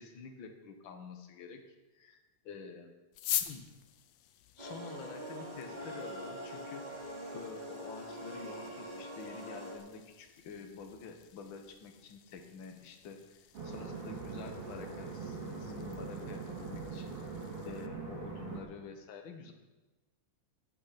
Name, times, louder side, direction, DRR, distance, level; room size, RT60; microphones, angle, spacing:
voice 1, 0.0-1.6 1.9-2.9 3.4-3.6 4.6-7.0 7.3-17.3 17.6-19.5, left 5 dB, 55° left, 4 dB, 1.4 m, -48 dB
sound 1, 3.1-17.9, left 12 dB, 85° left, 1.5 m, -46 dB
sound 2, 4.6-9.8, equal, 15° right, 2.5 m, -44 dB
sound 3, 13.5-18.6, right 4 dB, 45° right, 3.3 m, -42 dB
15.5 x 9.0 x 5.9 m, 1.2 s
omnidirectional pair, 3.9 m